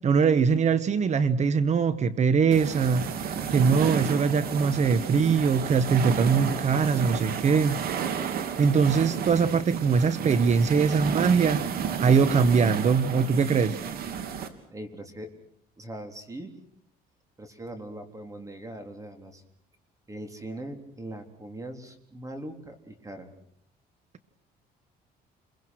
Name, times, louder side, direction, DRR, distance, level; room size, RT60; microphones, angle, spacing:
voice 1, 0.0-7.8 8.3-13.8, right 5 dB, 45° right, 14 dB, 1.3 m, -22 dB
sound 1, 2.5-14.5, right 7 dB, 65° right, 3.1 m, -32 dB
voice 2, 14.7-15.3 15.8-16.5 17.4-19.4 20.1-23.3, right 1 dB, 20° right, 6 dB, 3.9 m, -40 dB
29.5 x 22.5 x 6.3 m, 0.68 s
cardioid pair, 110°, 17 cm